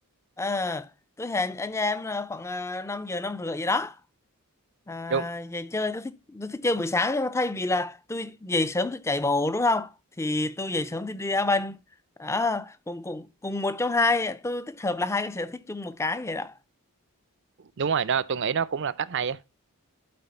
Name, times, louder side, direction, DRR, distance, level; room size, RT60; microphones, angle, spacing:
voice 1, 0.4-0.9 1.2-4.0 4.9-9.9 10.2-11.8 12.2-16.5, left 2 dB, 10° left, 0.4 m, -28 dB
voice 2, 17.8-19.5, right 6 dB, 55° right, 0.5 m, -27 dB
12.0 x 4.2 x 4.2 m
head